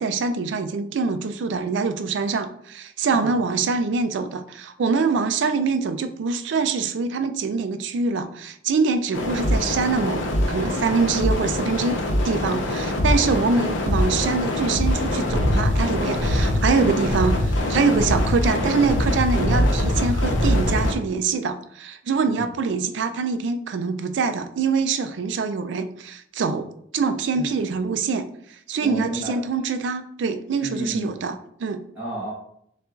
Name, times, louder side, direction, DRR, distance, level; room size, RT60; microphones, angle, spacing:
voice 1, 0.0-26.7 26.9-28.3 28.7-31.8, right 4 dB, 70° right, 9 dB, 0.4 m, -24 dB
sound 1, 9.1-20.9, left 1 dB, 85° left, 0.6 m, -23 dB
voice 2, 27.3-27.7 28.8-29.4 30.6-31.2 31.9-32.3, right 1 dB, 10° right, -8 dB, 1.1 m, -31 dB
6.5 x 2.4 x 2.4 m, 0.72 s
head